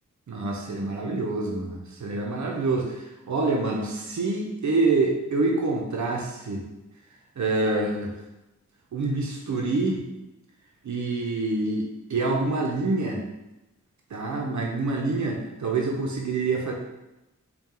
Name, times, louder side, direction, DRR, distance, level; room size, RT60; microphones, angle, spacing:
voice 1, 0.3-6.6 7.4-8.1 8.9-10.0 10.8-13.2 14.1-16.7, right 3 dB, 70° right, 0 dB, 0.7 m, -26 dB
4.2 x 2.3 x 3.7 m, 0.96 s
wide cardioid pair, 80°, 30 cm